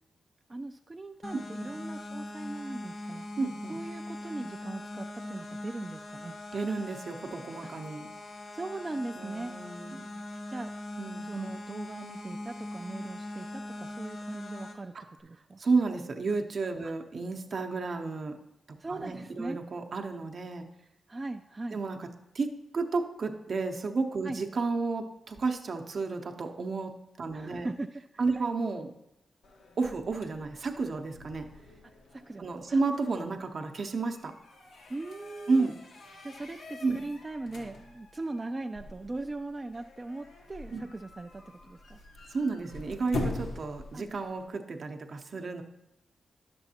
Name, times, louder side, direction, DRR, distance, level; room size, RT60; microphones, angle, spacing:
voice 1, 0.5-3.2 3.7-6.4 7.6-7.7 8.5-9.5 10.5-10.7 11.2-15.0 15.2-15.6 16.8-16.9 18.8-19.6 21.1-21.8 24.2-24.4 27.3-27.9 28.1-28.5 32.1-32.8 34.9-35.7 36.2-42.0 43.9-44.0, right 2 dB, 30° right, 5 dB, 0.3 m, -39 dB
sound 1, 1.2-14.7, left 1 dB, 60° left, 1.2 m, -41 dB
voice 2, 1.3-1.7 3.4-3.8 6.5-8.1 9.2-10.1 11.0-11.5 14.9-15.0 15.6-18.4 18.7-20.7 21.7-22.1 22.3-27.7 28.2-28.9 29.8-31.5 32.4-34.3 35.5-35.7 36.8-37.0 40.7-40.8 42.3-45.6, right 4 dB, 60° right, 5 dB, 0.7 m, -32 dB
sound 2, 29.4-44.5, left 2 dB, 80° left, 0.9 m, -43 dB
10.5 x 6.9 x 2.8 m, 0.89 s
cardioid pair, 60°, 0 cm